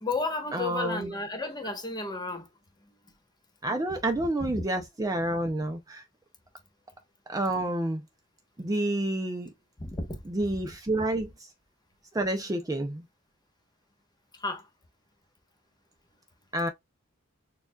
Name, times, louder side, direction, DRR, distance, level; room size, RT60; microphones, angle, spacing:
voice 1, 0.0-2.5 4.4-4.6 9.8-10.2 14.4-14.7, left 3 dB, 20° left, 1.1 m, -32 dB
voice 2, 0.5-1.1 3.6-6.0 7.3-8.0 8.6-9.5 10.3-11.3 12.1-13.0 16.5-16.7, right 1 dB, 20° right, 0.5 m, -29 dB
6.7 x 2.3 x 2.3 m
head